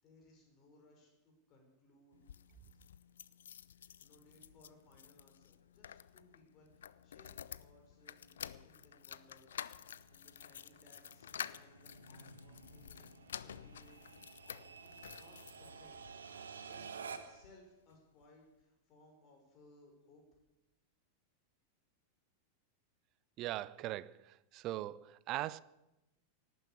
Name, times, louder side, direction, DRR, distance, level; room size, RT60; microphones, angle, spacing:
voice 1, 0.0-2.2 4.0-9.5 10.1-13.0 13.4-14.1 14.4-16.0 16.7-20.2, left 2 dB, 35° left, 5.5 m, -64 dB
sound 1, 2.1-16.1 16.7-17.6 17.9-18.0 18.2-18.3, left 9 dB, 65° left, 0.5 m, -50 dB
sound 2, 7.4-17.5, right 6 dB, 70° right, 1.3 m, -53 dB
sound 3, 11.7-15.0, left 1 dB, 80° left, 1.6 m, -61 dB
voice 2, 23.4-25.6, right 15 dB, 40° right, 0.5 m, -40 dB
18.0 x 9.6 x 8.5 m
figure-of-eight pair, 90°, 0 cm